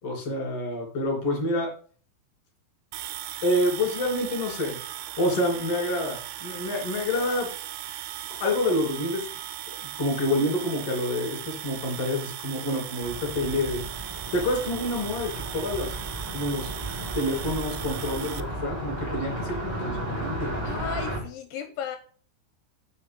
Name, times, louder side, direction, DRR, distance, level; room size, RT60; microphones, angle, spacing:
voice 1, 0.0-1.7 3.4-4.8 5.2-7.5 8.4-9.3 9.7-15.9 16.3-16.7 17.1-20.6, left 1 dB, 40° left, 1 dB, 3.0 m, -28 dB
sound 1, 2.9-18.4, right 12 dB, 80° right, 3.1 m, -38 dB
Car passing by, 13.0-21.2, right 1 dB, 40° right, 0.5 m, -34 dB
voice 2, 20.6-22.0, left 9 dB, 85° left, 8 dB, 2.9 m, -35 dB
7.3 x 6.4 x 5.1 m, 0.43 s
omnidirectional pair, 5.6 m